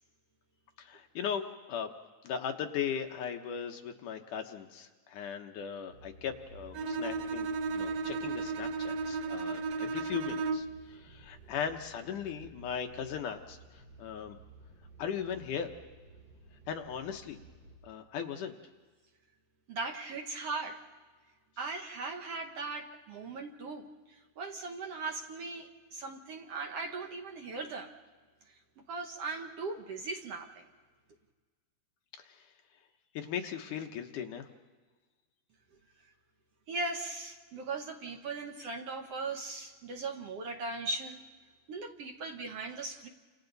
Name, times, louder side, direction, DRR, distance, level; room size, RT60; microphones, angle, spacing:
voice 1, 0.8-1.9 2.2-13.6 14.0-14.4 15.0-15.7 16.7-17.4 17.8-18.6 32.3-32.4 33.1-34.5, left 8 dB, 70° left, 4 dB, 2.3 m, -38 dB
sound 1, 5.9-17.8, right 2 dB, 25° right, 4.6 m, -55 dB
Bowed string instrument, 6.7-10.8, right 3 dB, 80° right, 1.5 m, -34 dB
voice 2, 19.7-20.8 21.6-27.9 28.9-30.7 36.7-41.2 41.7-43.1, right 3 dB, 60° right, 2 dB, 1.7 m, -39 dB
29.5 x 27.0 x 4.0 m, 1.4 s
omnidirectional pair, 4.3 m